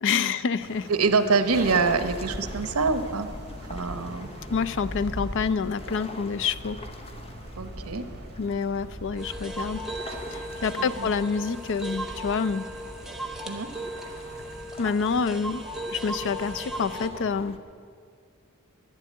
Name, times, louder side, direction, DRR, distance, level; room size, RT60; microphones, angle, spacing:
voice 1, 0.0-0.9 4.5-6.8 8.4-9.8 10.6-12.7 14.8-15.6 15.9-17.6, left 5 dB, 60° left, 14 dB, 0.5 m, -27 dB
sound 1, 0.6-14.6, right 1 dB, 50° right, 2.2 m, -47 dB
voice 2, 0.9-3.3 3.7-4.3 7.6-8.0 10.8-11.1 13.5-13.7, right 4 dB, 80° right, 10 dB, 0.9 m, -25 dB
sound 2, 1.5-17.6, left 1 dB, 25° left, 0.8 m, -40 dB
sound 3, 9.2-17.1, right 1 dB, ahead, 1.0 m, -37 dB
11.5 x 11.0 x 8.6 m, 2.2 s
head